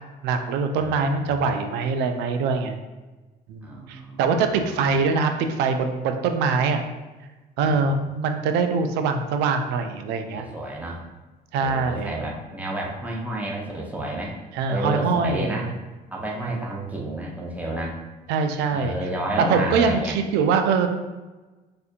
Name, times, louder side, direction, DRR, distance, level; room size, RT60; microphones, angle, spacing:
voice 1, 0.2-2.8 3.5-6.8 7.6-10.5 11.5-12.1 14.5-15.7 16.4-16.6 18.3-19.0 19.4-20.9, right 5 dB, 90° right, 6 dB, 0.4 m, -23 dB
voice 2, 0.8-1.4 3.6-4.7 7.7-7.8 10.3-11.0 11.6-14.4 14.7-15.7 16.1-18.0 18.7-20.2, right 1 dB, 10° right, -2 dB, 0.6 m, -31 dB
4.2 x 2.5 x 2.5 m, 1.2 s
cardioid pair, 110°, 17 cm